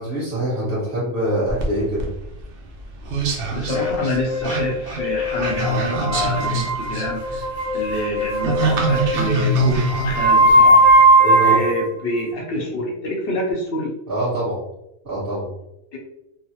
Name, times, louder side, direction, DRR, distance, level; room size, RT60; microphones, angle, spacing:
voice 1, 0.0-2.1 11.2-11.6 14.1-14.6 15.0-15.5, right 1 dB, 40° right, -12 dB, 1.3 m, -24 dB
sound 1, 1.5-11.1, right 2 dB, 60° right, 0.6 m, -25 dB
voice 2, 3.5-7.5 7.7-10.8 11.4-13.9 15.9-16.0, left 1 dB, 55° left, -1 dB, 0.7 m, -27 dB
sound 2, 3.7-11.9, right 1 dB, 85° right, 1.2 m, -18 dB
3.2 x 2.0 x 2.7 m, 0.85 s
omnidirectional pair, 1.4 m